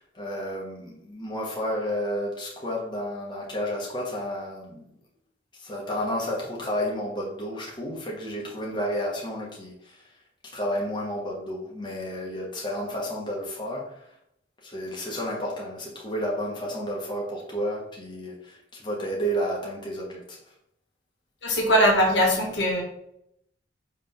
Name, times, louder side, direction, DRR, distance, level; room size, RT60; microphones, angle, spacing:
voice 1, 0.0-4.9 5.5-10.1 10.5-14.1 14.6-20.4, equal, 25° left, -3 dB, 1.3 m, -31 dB
voice 2, 21.4-22.8, equal, 70° left, -1 dB, 2.0 m, -21 dB
5.8 x 3.6 x 5.4 m, 0.75 s
head